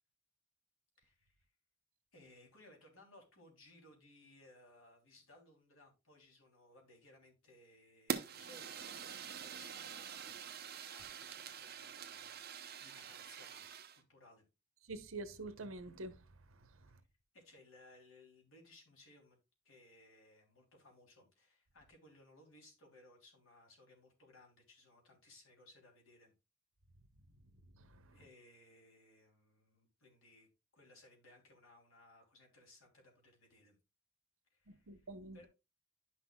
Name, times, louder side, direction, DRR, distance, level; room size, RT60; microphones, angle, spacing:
voice 1, 1.0-1.5 2.1-12.4 12.8-13.6 14.0-14.5 16.9-17.1 17.3-19.4 19.6-26.3 28.1-30.5 30.7-33.7 34.5-35.1 35.3-35.5, left 2 dB, 85° left, 3.0 m, -63 dB
Fire, 8.1-14.0, right 7 dB, 50° right, 0.8 m, -45 dB
voice 2, 14.9-16.2 16.8-16.9 27.8-28.1 34.7-35.4, right 2 dB, 85° right, 0.9 m, -47 dB
11.0 x 6.0 x 2.2 m
head